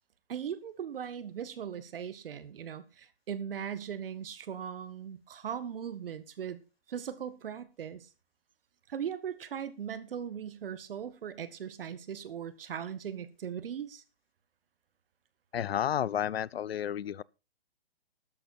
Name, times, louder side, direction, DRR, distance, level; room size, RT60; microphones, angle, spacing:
voice 1, 0.3-6.6 6.9-8.1 8.9-14.0, right 8 dB, 60° right, 1.8 m, -39 dB
voice 2, 15.5-17.2, left 10 dB, 70° left, 0.6 m, -31 dB
13.0 x 10.5 x 4.4 m
hypercardioid pair, 145°, 31 cm